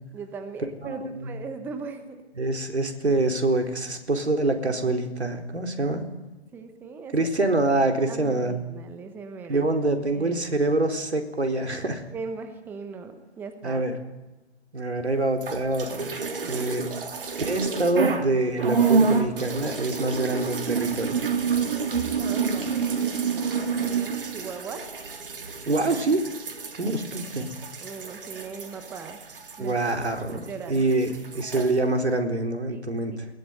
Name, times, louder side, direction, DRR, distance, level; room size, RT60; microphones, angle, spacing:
voice 1, 0.1-2.2 6.5-7.2 8.1-9.7 10.1-10.6 12.1-13.8 16.4-16.7 21.9-24.9 27.8-29.2 29.6-29.8 30.3-30.9 32.7-33.0, right 5 dB, 5° right, 8 dB, 1.1 m, -39 dB
voice 2, 0.8-1.4 2.4-6.0 7.1-8.6 9.5-12.0 13.6-14.0 14.7-16.1 16.4-16.8 17.4-21.2 25.7-26.2 26.8-27.5 29.6-30.4 30.7-33.3, right 2 dB, 75° right, 5 dB, 4.1 m, -25 dB
sound 1, 15.3-18.3 18.6-30.5 30.7-31.7, right 5 dB, 55° right, 3.5 m, -28 dB
21.0 x 20.0 x 9.4 m, 1.1 s
figure-of-eight pair, 140°, 33 cm